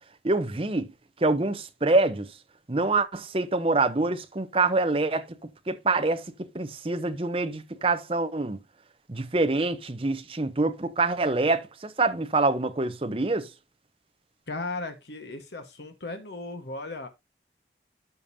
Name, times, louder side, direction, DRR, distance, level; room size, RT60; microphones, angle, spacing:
voice 1, 0.2-0.9 1.2-2.3 2.7-5.2 5.7-6.2 6.5-8.6 9.1-13.5, right 3 dB, 30° right, 0.8 m, -25 dB
voice 2, 14.5-17.1, left 2 dB, 75° left, 1.4 m, -36 dB
12.5 x 5.2 x 2.7 m
head